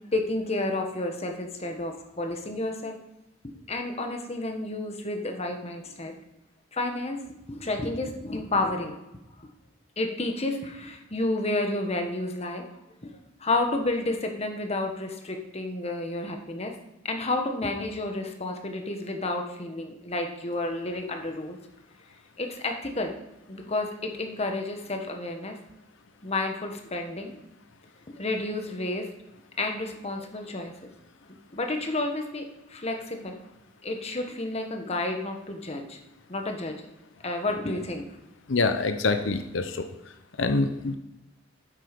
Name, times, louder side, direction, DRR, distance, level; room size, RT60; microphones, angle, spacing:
voice 1, 0.1-3.0 3.7-6.1 6.7-9.0 9.4-9.5 10.0-12.7 13.0-16.7 17.0-21.6 22.4-23.1 23.5-25.5 26.2-27.4 28.1-29.1 29.6-30.9 31.5-33.3 33.8-36.0 36.3-36.8 37.2-38.0, left 2 dB, 35° left, 4 dB, 1.3 m, -31 dB
voice 2, 38.5-39.8 40.4-41.0, left 3 dB, 75° left, 8 dB, 0.7 m, -25 dB
9.0 x 7.7 x 5.2 m, 0.92 s
head